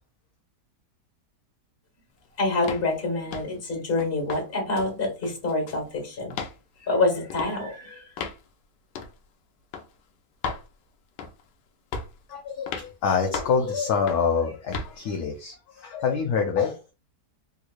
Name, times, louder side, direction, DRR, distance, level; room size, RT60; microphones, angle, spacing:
voice 1, 2.4-6.3 6.8-8.1, left 2 dB, 35° left, 1.5 m, -26 dB
sound 1, 2.6-2.9 3.3-3.6 4.0-4.4 4.8-4.9 5.2-5.9 6.3-6.6 7.3-7.5 8.2-8.4 9.0-9.1 9.7-9.9 10.4-10.7 11.2-11.5 11.9-12.2 12.7-12.9 13.3-13.6 14.1-14.3 14.7-14.9, left 5 dB, 85° left, 1.3 m, -34 dB
voice 2, 12.3-16.9, left 6 dB, 70° left, 1.1 m, -26 dB
3.6 x 3.0 x 2.4 m
omnidirectional pair, 1.9 m